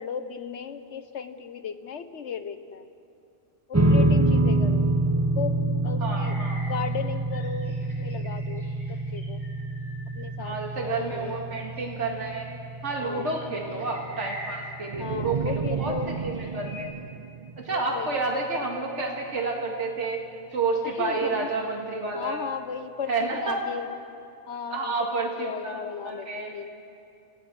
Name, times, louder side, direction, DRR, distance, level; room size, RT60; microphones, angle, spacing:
voice 1, 0.0-2.9 3.7-4.9 5.4-6.4 6.7-9.4 10.1-10.5 10.8-11.4 13.0-13.3 15.0-16.1 17.7-18.2 20.8-21.5 22.1-23.9 24.5-25.1 25.4-26.7, left 7 dB, 70° left, 10 dB, 1.3 m, -36 dB
sound 1, 3.7-16.3, right 1 dB, 15° right, 1.2 m, -27 dB
voice 2, 6.0-6.7 10.4-12.5 12.8-16.9 17.6-20.2 20.5-22.5 23.1-23.6 24.7-26.5, right 3 dB, 75° right, 0 dB, 2.2 m, -30 dB
sound 2, 6.2-11.3 11.7-15.5 15.8-16.8, equal, 45° left, 7.3 m, -46 dB
sound 3, 14.9-18.2, right 7 dB, 45° right, 0.5 m, -33 dB
29.0 x 15.5 x 6.2 m, 2.5 s
omnidirectional pair, 1.2 m